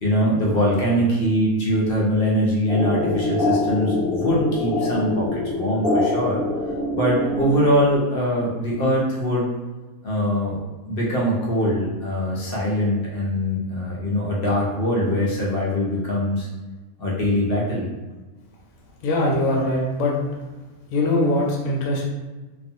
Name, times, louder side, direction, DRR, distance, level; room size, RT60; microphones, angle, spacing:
voice 1, 0.0-6.4 6.9-9.5 10.0-10.6 10.9-16.5 17.0-17.9, equal, 60° left, -4 dB, 0.6 m, -22 dB
sound 1, 2.7-8.2, left 2 dB, 20° left, 0.9 m, -24 dB
voice 2, 19.0-20.2 20.9-22.1, left 1 dB, 75° left, -2 dB, 1.0 m, -21 dB
2.4 x 2.4 x 2.6 m, 1.2 s
omnidirectional pair, 1.5 m